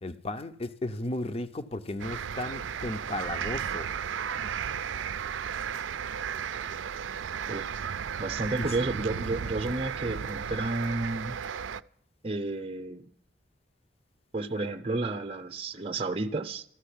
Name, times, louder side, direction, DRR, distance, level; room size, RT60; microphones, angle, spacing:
voice 1, 0.0-3.9 8.6-8.7, left 1 dB, 30° left, 0.6 m, -35 dB
sound 1, 2.0-11.8, right 7 dB, 85° right, 0.4 m, -34 dB
voice 2, 8.2-11.4 12.2-13.1 14.3-16.6, right 2 dB, 30° right, 0.7 m, -31 dB
14.0 x 6.3 x 9.9 m
head